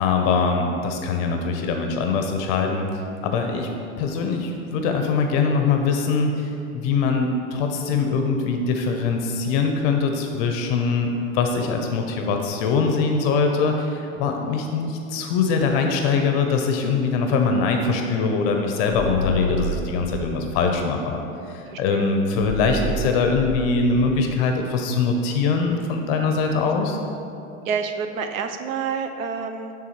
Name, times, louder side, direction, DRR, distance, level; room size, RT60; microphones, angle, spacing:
voice 1, 0.0-2.9 3.2-3.7 4.0-6.5 6.7-27.0, left 4 dB, 45° left, 4 dB, 0.6 m, -22 dB
sound 1, 18.9-20.7 22.4-24.4, equal, 15° right, 0.6 m, -30 dB
voice 2, 21.7-22.1 27.7-29.7, right 6 dB, 90° right, 7 dB, 0.6 m, -28 dB
9.3 x 3.6 x 3.0 m, 2.7 s
hypercardioid pair, 115°, 40 cm